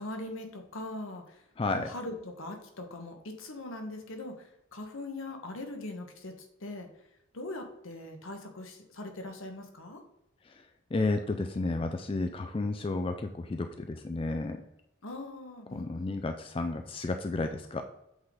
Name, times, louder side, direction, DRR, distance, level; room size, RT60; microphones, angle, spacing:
voice 1, 0.0-1.4 1.7-6.9 7.3-10.0 15.0-16.1, left 2 dB, 80° left, 4 dB, 1.1 m, -41 dB
voice 2, 1.6-1.9 10.9-14.6 15.7-17.8, left 2 dB, 25° left, 6 dB, 0.3 m, -32 dB
7.9 x 3.6 x 4.0 m, 0.84 s
head